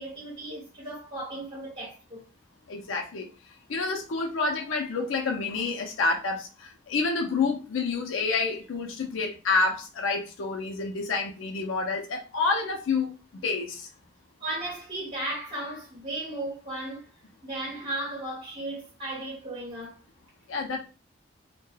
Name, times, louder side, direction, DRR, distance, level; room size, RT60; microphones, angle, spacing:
voice 1, 0.0-2.2 5.5-5.6 14.4-17.1 17.4-20.0, right 1 dB, 25° right, 1.2 m, -35 dB
voice 2, 2.7-3.3 3.7-13.1 13.4-13.9 20.5-20.8, left 4 dB, 90° left, 0.5 m, -28 dB
2.2 x 2.1 x 3.1 m
head